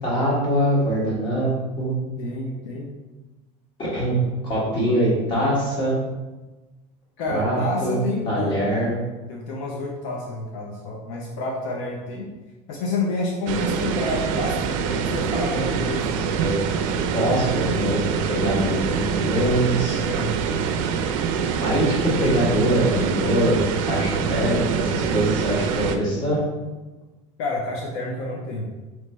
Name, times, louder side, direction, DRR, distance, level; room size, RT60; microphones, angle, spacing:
voice 1, 0.0-2.0 3.8-4.2 4.4-6.0 7.3-8.0 8.2-9.0 16.1-20.0 21.6-23.6 23.8-26.4, equal, 30° left, -5 dB, 1.4 m, -23 dB
voice 2, 2.2-2.9 7.2-8.7 9.3-12.3 12.7-16.1 20.1-20.3 23.0-23.1 27.4-28.7, left 2 dB, 70° left, -2 dB, 0.7 m, -29 dB
sound 1, 13.5-26.0, right 6 dB, 90° right, 0.4 m, -25 dB
3.3 x 3.1 x 4.3 m, 1.1 s
cardioid pair, 165°, 17 cm